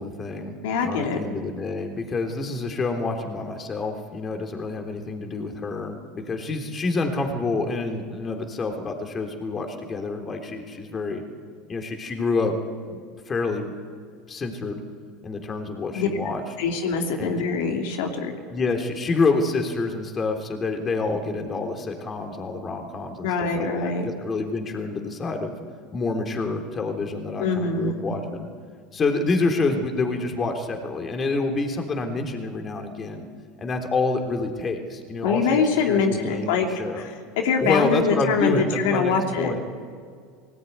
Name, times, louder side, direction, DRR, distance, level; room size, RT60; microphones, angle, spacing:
voice 1, 0.0-0.6 0.8-11.2 11.7-12.6 13.3-13.7 14.3-14.8 15.2-16.4 17.2-17.3 18.5-25.5 25.9-28.5 28.9-33.3 33.6-37.0 37.6-39.6, left 3 dB, 30° left, 4 dB, 3.4 m, -27 dB
voice 2, 0.6-1.2 15.9-18.3 23.2-24.1 27.4-28.0 35.2-36.7 37.0-39.5, left 5 dB, 75° left, 2 dB, 2.9 m, -24 dB
18.5 x 18.5 x 9.5 m, 2.1 s
hypercardioid pair, 95°, 0 cm